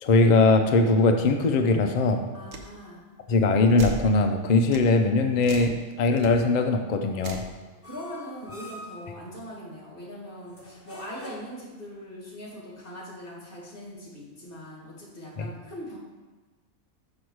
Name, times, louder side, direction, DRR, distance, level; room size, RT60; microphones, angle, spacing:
voice 1, 0.0-2.2 3.3-7.4 15.4-15.5, left 3 dB, 75° left, 5 dB, 0.4 m, -21 dB
voice 2, 2.3-3.1 7.7-16.0, equal, 40° left, -4 dB, 2.2 m, -41 dB
sound 1, 2.5-2.7 3.8-4.1 4.7-4.9 5.4-5.7 6.2-6.3 7.2-7.5, right 3 dB, 70° right, 1.1 m, -35 dB
sound 2, 7.8-9.0 10.5-11.7, left 1 dB, 15° left, 0.7 m, -45 dB
6.3 x 5.8 x 4.7 m, 1.3 s
omnidirectional pair, 1.5 m